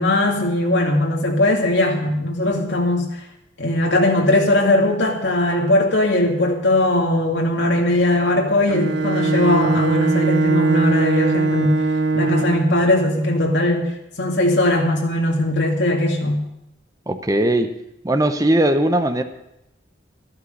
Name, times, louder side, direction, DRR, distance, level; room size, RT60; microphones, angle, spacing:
voice 1, 0.0-3.2 3.6-11.8 12.1-13.9 14.2-16.5, left 1 dB, 70° left, 0 dB, 2.4 m, -19 dB
Bowed string instrument, 8.7-12.8, right 3 dB, 65° right, 0.7 m, -20 dB
voice 2, 17.1-17.7 18.0-19.2, right 1 dB, 20° right, 8 dB, 0.8 m, -19 dB
13.0 x 11.5 x 5.4 m, 0.85 s
head